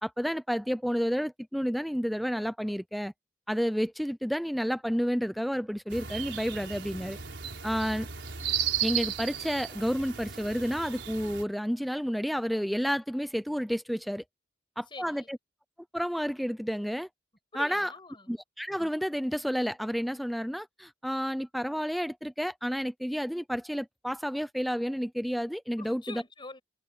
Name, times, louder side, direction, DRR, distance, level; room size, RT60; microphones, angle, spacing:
voice 1, 0.0-3.1 3.5-7.2 7.6-8.1 8.8-14.2 14.8-15.4 15.9-17.1 17.5-17.9 18.3-26.2, equal, ahead, 0.4 m, -30 dB
sound 1, 5.9-11.4, right 9 dB, 80° right, 4.5 m, -35 dB
voice 2, 14.9-15.3 17.5-18.4 25.8-26.6, left 3 dB, 25° left, 6.3 m, -45 dB
head